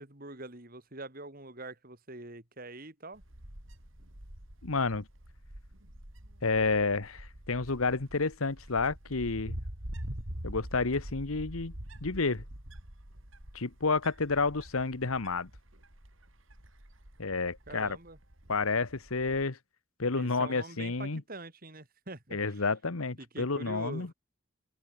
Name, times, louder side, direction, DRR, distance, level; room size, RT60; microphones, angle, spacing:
voice 1, 0.0-3.2 17.7-18.2 20.1-22.6 23.2-24.1, right 2 dB, 45° right, 3.2 m, -45 dB
Wind, 3.1-19.4, right 1 dB, 65° right, 4.4 m, -45 dB
voice 2, 4.6-5.0 6.4-9.6 10.4-11.7 12.0-12.4 13.5-15.5 17.2-18.0 18.5-19.6 20.0-21.2 22.3-24.1, left 4 dB, 80° left, 1.3 m, -30 dB
open air
head